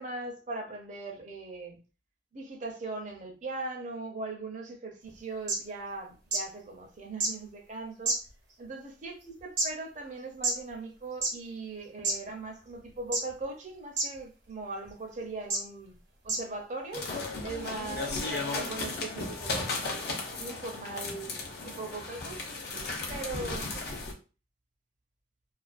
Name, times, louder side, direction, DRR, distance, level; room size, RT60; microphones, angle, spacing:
voice 1, 0.0-1.8 2.3-8.2 8.6-15.9 16.2-17.1 17.4-21.4 21.6-24.0, right 2 dB, 45° right, 0.5 m, -40 dB
sound 1, 5.2-5.3 5.5-5.6 6.3-6.4 7.2-7.3 8.1-8.5 9.2-9.7 10.4-10.5 11.1-11.3 12.0-12.1 13.1-13.4 14.0-14.1 14.8-14.9 15.5-15.6 16.3-16.4 17.2-17.3, right 3 dB, 80° right, 0.8 m, -28 dB
sound 2, 16.9-24.1, left 3 dB, 60° left, 0.6 m, -35 dB
2.4 x 2.2 x 2.4 m
head